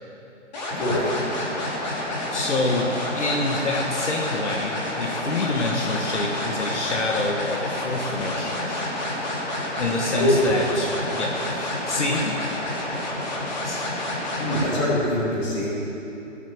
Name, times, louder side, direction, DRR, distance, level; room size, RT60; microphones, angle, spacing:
sound 1, 0.5-14.7, left 1 dB, 35° left, 3.0 m, -29 dB
voice 1, 0.7-1.3 10.1-10.6 14.4-15.7, left 1 dB, 20° left, -8 dB, 3.8 m, -23 dB
voice 2, 2.3-12.6 13.6-13.9, left 2 dB, 65° left, 0 dB, 1.7 m, -27 dB
15.5 x 9.1 x 7.7 m, 2.9 s
hypercardioid pair, 160°, 38 cm